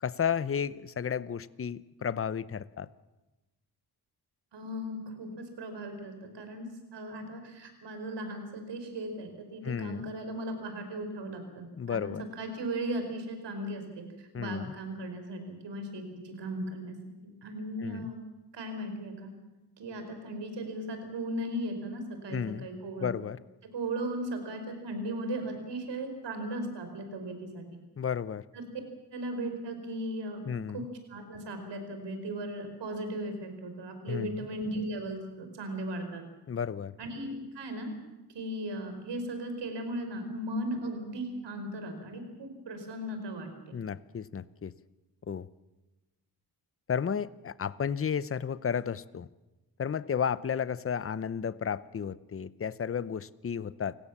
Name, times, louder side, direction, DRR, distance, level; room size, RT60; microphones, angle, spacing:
voice 1, 0.0-2.9 9.6-10.0 11.8-12.2 14.3-14.7 17.8-18.1 22.3-22.7 23.0-23.4 28.0-28.4 30.5-30.9 34.1-34.5 36.5-36.9 43.7-44.7 45.3-45.5 46.9-49.3 49.8-53.9, left 7 dB, 35° left, 17 dB, 0.7 m, -33 dB
voice 2, 4.5-12.1 12.4-17.0 17.2-18.2 18.5-19.3 19.8-23.1 23.7-27.8 28.5-28.7 29.1-30.4 30.7-36.2 37.0-37.9 38.3-43.8, right 1 dB, 85° right, 6 dB, 5.1 m, -37 dB
29.0 x 17.5 x 7.3 m, 1.1 s
wide cardioid pair, 115°, 41 cm